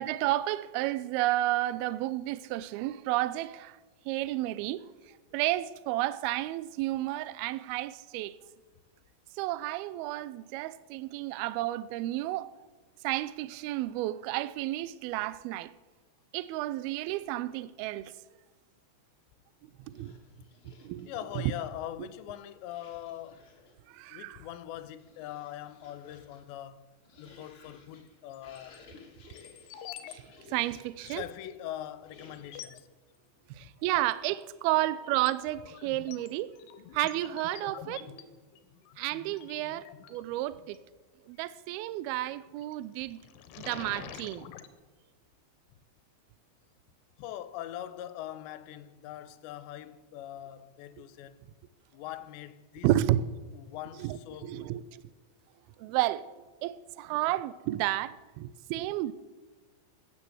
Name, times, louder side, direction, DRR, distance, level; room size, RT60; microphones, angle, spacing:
voice 1, 0.0-3.8 4.1-4.8 5.3-8.4 9.4-12.5 13.0-15.7 16.3-18.1 19.6-20.2 20.8-21.1 21.4-21.5 22.0-22.1 23.9-24.4 30.1-30.2 30.5-31.2 33.5-36.5 36.9-38.1 39.0-40.8 41.3-43.2 43.6-44.5 52.8-53.2 54.0-55.0 55.8-56.3 56.6-59.1, right 15 dB, 90° right, 2.1 m, -31 dB
sound 1, 19.8-21.7 22.6-23.9 24.6-31.1 32.1-32.7, left 4 dB, 40° left, 2.1 m, -57 dB
voice 2, 21.0-23.4 24.1-26.9 27.2-28.8 31.0-32.9 33.6-33.7 47.2-51.4 51.9-52.9 53.5-54.7, left 12 dB, 90° left, 2.9 m, -42 dB
sound 2, 28.3-28.8 29.3-30.2 30.4-30.5 31.0-31.1 31.8-31.9 32.3-32.8 34.1-34.4 34.8-40.8 42.4-42.7 43.1-44.7, left 9 dB, 75° left, 2.8 m, -47 dB
15.0 x 9.8 x 7.8 m
omnidirectional pair, 5.1 m